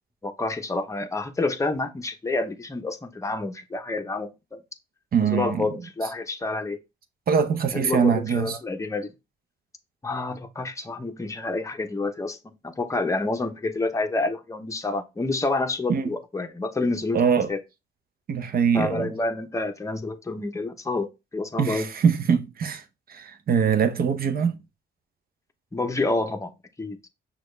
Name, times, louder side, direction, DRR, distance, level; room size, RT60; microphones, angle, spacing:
voice 1, 0.2-4.6 5.3-6.8 7.7-9.1 10.0-12.4 12.6-17.2 17.5-17.6 18.7-21.1 21.3-21.9 25.7-27.0, left 2 dB, 15° left, 0.7 m, -28 dB
voice 2, 5.1-5.7 7.3-8.6 15.9-16.1 17.1-17.5 18.3-19.1 21.6-22.8 23.1-24.6, right 6 dB, 50° right, 0.7 m, -23 dB
6.1 x 2.3 x 3.3 m
cardioid pair, 90°, 20 cm